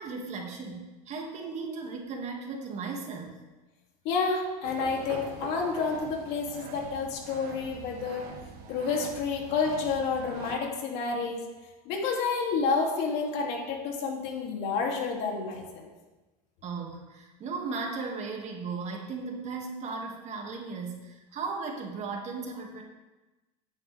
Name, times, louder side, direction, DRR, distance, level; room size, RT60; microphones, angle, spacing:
voice 1, 0.0-3.4 16.6-22.8, right 4 dB, 35° right, 1 dB, 2.2 m, -36 dB
voice 2, 4.0-8.3 8.7-11.5 11.8-15.9, left 4 dB, 60° left, 0 dB, 2.8 m, -30 dB
sound 1, 4.6-10.6, right 6 dB, 55° right, 1.5 m, -43 dB
14.5 x 9.9 x 3.5 m, 1.1 s
supercardioid pair, 130°, 19 cm